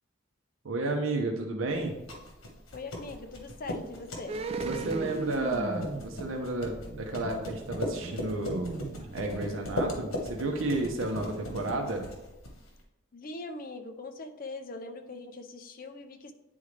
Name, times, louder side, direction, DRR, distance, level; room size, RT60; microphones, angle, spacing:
voice 1, 0.6-2.0 4.6-8.7 9.1-12.1, right 2 dB, 75° right, 2 dB, 0.8 m, -32 dB
sound 1, 1.8-12.8, left 1 dB, 90° left, 1.2 m, -38 dB
voice 2, 2.7-4.4 13.1-16.3, left 3 dB, 45° left, 7 dB, 0.5 m, -41 dB
sound 2, 4.3-9.7 10.0-10.1, right 3 dB, 30° right, 0.3 m, -37 dB
9.4 x 3.7 x 3.2 m, 0.99 s
head